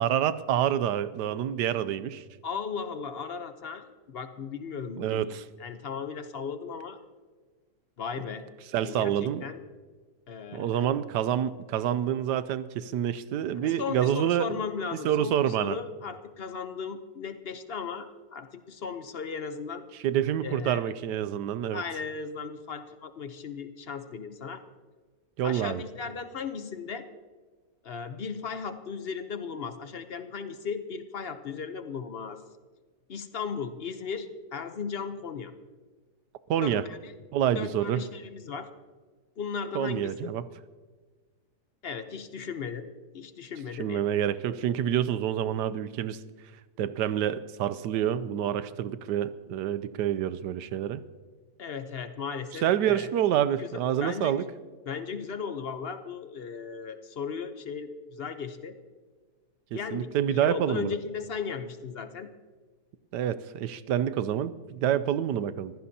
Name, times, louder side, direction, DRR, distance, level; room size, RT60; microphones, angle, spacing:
voice 1, 0.0-2.2 5.0-5.4 8.7-9.4 10.5-14.6 15.0-15.8 20.0-21.8 25.4-25.8 36.5-36.8 37.3-38.0 39.7-40.4 43.8-46.2 46.8-51.0 52.6-54.4 59.7-60.9 63.1-65.7, right 10 dB, 80° right, 14 dB, 1.2 m, -27 dB
voice 2, 2.4-7.0 8.0-8.4 8.8-9.6 10.3-10.9 13.6-19.8 20.4-20.9 21.7-24.6 25.4-27.1 27.8-32.4 33.1-35.5 36.6-37.1 37.5-38.7 39.4-40.1 41.8-42.9 43.1-44.1 51.6-53.1 53.6-53.7 54.0-54.5 54.9-58.7 59.7-62.3, left 6 dB, 50° left, 9 dB, 0.8 m, -36 dB
24.5 x 15.5 x 2.8 m, 1.4 s
omnidirectional pair, 1.8 m